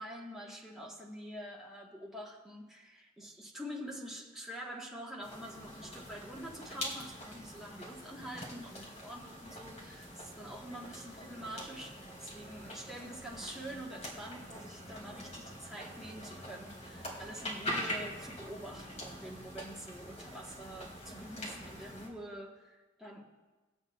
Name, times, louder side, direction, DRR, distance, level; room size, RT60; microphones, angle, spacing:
voice 1, 0.0-23.2, equal, ahead, -4 dB, 1.2 m, -46 dB
sound 1, 5.2-22.1, equal, 35° left, 2.3 m, -44 dB
20.5 x 8.1 x 2.3 m, 1.2 s
head